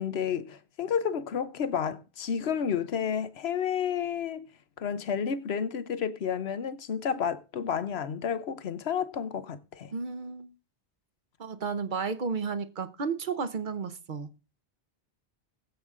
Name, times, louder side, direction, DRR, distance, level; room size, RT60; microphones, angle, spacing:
voice 1, 0.0-4.5 4.8-9.9, left 7 dB, 80° left, 1.1 m, -31 dB
voice 2, 9.9-10.5 11.4-14.3, right 5 dB, 50° right, 1.1 m, -33 dB
19.5 x 7.8 x 3.7 m
omnidirectional pair, 1.1 m